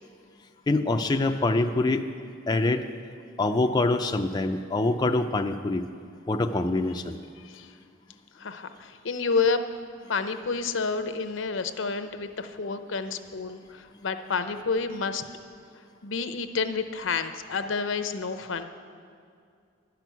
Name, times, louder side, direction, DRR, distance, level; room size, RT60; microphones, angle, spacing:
voice 1, 0.7-2.0 2.5-2.8 3.4-5.8 6.3-7.2, left 2 dB, 20° left, 4 dB, 0.4 m, -25 dB
voice 2, 8.4-9.6 10.1-15.2 16.0-18.6, left 4 dB, 75° left, 9 dB, 0.7 m, -29 dB
12.0 x 6.0 x 9.3 m, 2.3 s
head